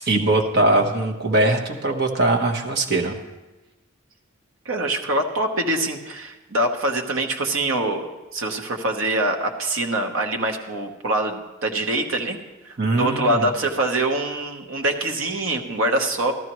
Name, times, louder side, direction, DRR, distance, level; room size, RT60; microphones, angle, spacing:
voice 1, 0.1-3.1 12.8-13.5, right 2 dB, 50° right, 2 dB, 1.1 m, -21 dB
voice 2, 4.6-12.4 12.6-16.3, right 1 dB, 75° right, 3 dB, 1.0 m, -24 dB
13.5 x 12.5 x 3.1 m, 1.1 s
head